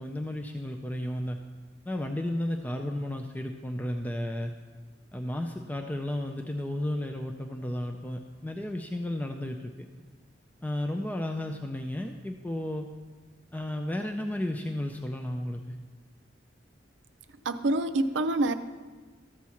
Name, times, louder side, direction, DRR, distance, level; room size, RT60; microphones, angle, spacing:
voice 1, 0.0-1.4 1.9-4.5 5.1-9.9 10.6-12.9 13.5-15.8, left 1 dB, 10° left, 4 dB, 0.4 m, -33 dB
voice 2, 17.4-18.5, right 2 dB, 85° right, 10 dB, 0.6 m, -26 dB
13.5 x 4.5 x 7.0 m, 1.4 s
head